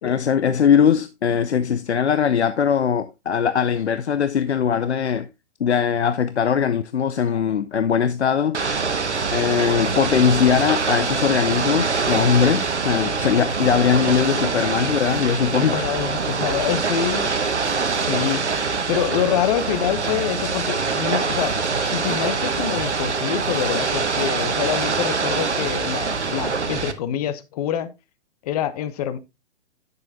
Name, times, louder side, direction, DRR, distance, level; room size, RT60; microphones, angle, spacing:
voice 1, 0.0-5.3 5.6-8.6 9.3-15.9, left 7 dB, 75° left, 0.6 m, -20 dB
Ocean / Boat Water vehicle, 8.5-26.9, right 4 dB, 80° right, 1.1 m, -24 dB
voice 2, 15.7-17.8 18.0-18.6 18.9-27.9 28.4-29.2, left 10 dB, 35° left, 0.9 m, -26 dB
9.6 x 6.7 x 2.8 m
figure-of-eight pair, 120°, 34 cm